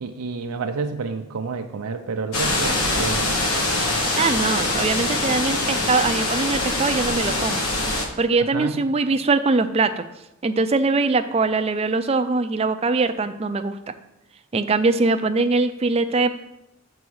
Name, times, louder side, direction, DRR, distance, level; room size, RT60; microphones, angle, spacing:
voice 1, 0.0-3.4 8.5-8.8, right 4 dB, 90° right, 5 dB, 0.5 m, -29 dB
sound 1, 2.3-8.1, left 2 dB, 80° left, 1.2 m, -23 dB
voice 2, 4.1-7.7 8.2-10.1 10.4-13.9 14.5-16.4, right 3 dB, 30° right, 9 dB, 0.4 m, -22 dB
6.9 x 4.8 x 6.3 m, 0.89 s
head